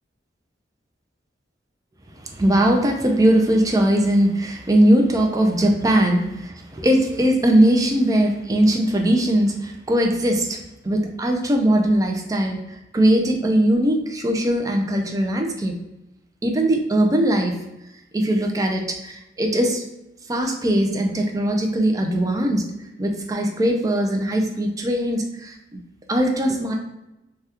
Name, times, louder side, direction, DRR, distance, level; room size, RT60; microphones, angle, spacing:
voice 1, 2.2-10.6 10.8-12.6 12.9-15.8 16.4-17.6 18.1-19.8 20.3-22.6 23.0-25.5 26.1-26.7, right 1 dB, 20° right, 3 dB, 0.4 m, -20 dB
2.8 x 2.3 x 3.4 m, 0.91 s
head